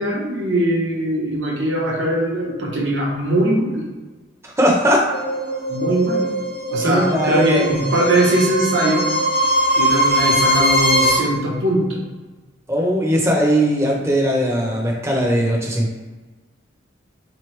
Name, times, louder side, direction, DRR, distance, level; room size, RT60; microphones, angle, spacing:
voice 1, 0.0-3.9 5.7-6.3 6.7-9.1 9.8-12.0, right 1 dB, 70° right, -2 dB, 1.0 m, -20 dB
voice 2, 4.6-5.0 6.8-7.9 12.7-15.9, equal, 15° right, -1 dB, 0.7 m, -19 dB
sound 1, 5.1-11.1, equal, 50° left, 0.8 m, -21 dB
4.0 x 3.1 x 3.1 m, 1.3 s
head